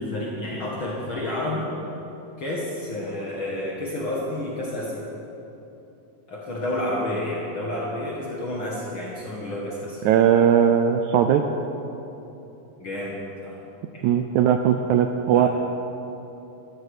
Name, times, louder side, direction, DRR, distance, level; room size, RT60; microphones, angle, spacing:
voice 1, 0.0-1.7 2.4-5.1 6.3-10.0 12.8-13.2 13.4-13.6 13.9-14.1 15.3-15.5, left 1 dB, 50° left, -4 dB, 1.8 m, -30 dB
voice 2, 10.0-11.4 14.0-15.5, right 9 dB, 85° right, 7 dB, 1.7 m, -19 dB
14.0 x 13.5 x 4.9 m, 3.0 s
omnidirectional pair, 3.9 m